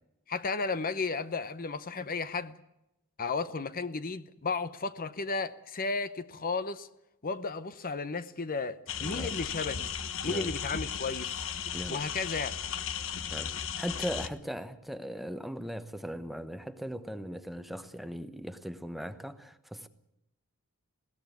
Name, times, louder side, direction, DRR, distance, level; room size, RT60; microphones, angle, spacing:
voice 1, 0.3-2.6 3.2-6.9 7.2-9.9 10.2-11.4 11.9-12.5, left 4 dB, 40° left, 0.8 m, -34 dB
sound 1, 8.9-14.3, left 8 dB, 65° left, 1.2 m, -36 dB
voice 2, 9.0-9.3 10.2-10.5 11.7-12.0 13.2-19.9, equal, ahead, 1.0 m, -39 dB
20.5 x 17.0 x 9.2 m
head